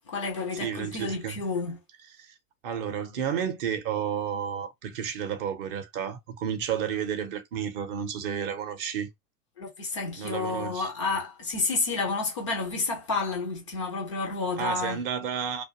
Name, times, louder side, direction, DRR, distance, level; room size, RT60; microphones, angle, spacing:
voice 1, 0.1-1.8 9.6-15.0, left 3 dB, 25° left, 0.3 m, -30 dB
voice 2, 0.6-1.4 2.2-2.3 2.6-9.1 10.2-10.9 14.6-15.6, right 8 dB, 35° right, 0.7 m, -31 dB
2.4 x 2.2 x 2.8 m
figure-of-eight pair, 95°, 47 cm